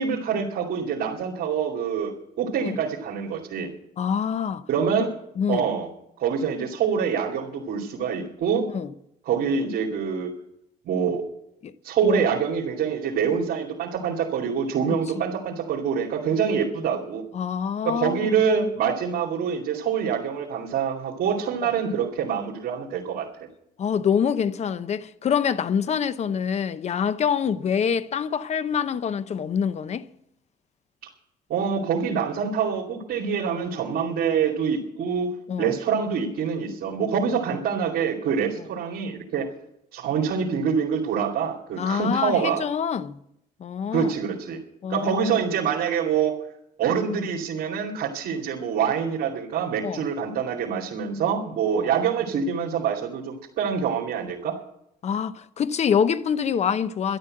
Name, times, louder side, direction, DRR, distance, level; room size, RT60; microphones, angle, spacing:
voice 1, 0.0-3.7 4.7-5.1 5.5-5.9 6.2-8.7 9.3-10.3 10.8-11.2 11.8-17.2 17.8-23.3 31.0-31.1 31.5-39.5 39.9-42.6 43.9-44.6 44.9-46.4 46.8-54.5, right 7 dB, 65° right, 2.7 m, -25 dB
voice 2, 4.0-4.6 5.4-5.6 8.7-8.9 11.6-11.7 12.0-12.2 17.3-18.3 21.6-21.7 23.8-30.0 35.5-35.7 41.8-43.2 43.6-44.1 44.8-45.4 49.8-50.0 51.8-51.9 55.0-57.2, left 7 dB, 40° left, 0.8 m, -25 dB
12.5 x 12.0 x 7.8 m
cardioid pair, 110°, 17 cm